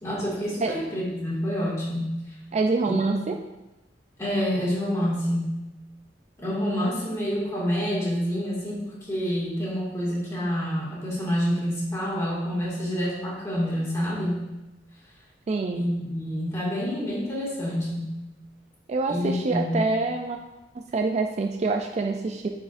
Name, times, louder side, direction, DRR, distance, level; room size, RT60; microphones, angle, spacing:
voice 1, 0.0-2.1 2.8-3.2 4.2-5.6 6.4-14.4 15.7-18.2 19.1-19.8, equal, 15° left, -7 dB, 2.1 m, -28 dB
voice 2, 2.5-3.4 15.5-15.8 18.9-20.4 20.7-22.5, right 3 dB, 35° right, 3 dB, 0.3 m, -26 dB
9.3 x 4.7 x 2.5 m, 1.0 s
head